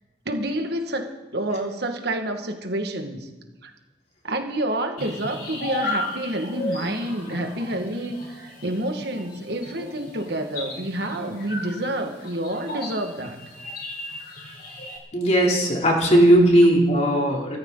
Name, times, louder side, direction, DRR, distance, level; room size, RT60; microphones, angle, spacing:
voice 1, 0.3-3.3 3.6-3.7 4.2-13.4, right 1 dB, 60° right, 4 dB, 2.0 m, -28 dB
sound 1, 5.0-15.0, left 2 dB, 55° left, 4.3 m, -35 dB
voice 2, 15.1-17.6, right 1 dB, 40° left, -1 dB, 3.5 m, -17 dB
24.5 x 14.0 x 4.1 m, 1.1 s
head